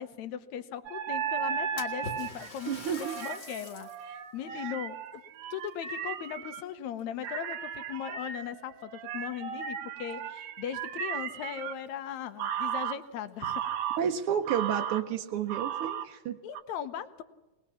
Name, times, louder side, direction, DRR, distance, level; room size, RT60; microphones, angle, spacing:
voice 1, 0.0-2.7 3.2-5.0 5.5-13.6 16.4-17.2, left 9 dB, 70° left, 10 dB, 2.3 m, -38 dB
sound 1, 0.9-6.6 7.2-11.7 12.4-13.0 13.4-14.0 14.5-15.0 15.5-16.1 16.6-16.7, right 8 dB, 85° right, 2.4 m, -35 dB
Splash splatter, 1.8-4.1 4.6-4.7 5.6-6.6 7.0-7.4 8.2-8.3 8.8-8.9 11.1-11.2 11.5-11.6 12.2-12.3 12.7-12.8 13.5-14.1, left 4 dB, 40° left, 2.0 m, -45 dB
voice 2, 2.7-3.2 4.5-4.7 14.0-16.4, right 8 dB, 70° right, 4 dB, 1.3 m, -31 dB
21.5 x 20.0 x 7.1 m, 1.1 s
omnidirectional pair, 3.5 m